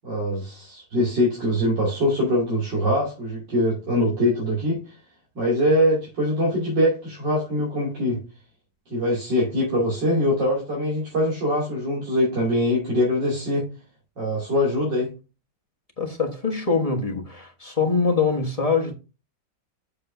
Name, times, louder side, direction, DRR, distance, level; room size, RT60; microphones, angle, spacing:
voice 1, 0.0-4.8 5.3-8.2 8.9-13.7 14.2-15.1, equal, 90° right, 3.4 m, -23 dB
voice 2, 16.0-18.9, left 4 dB, 25° left, 1.2 m, -23 dB
7.9 x 6.9 x 2.7 m
omnidirectional pair, 1.9 m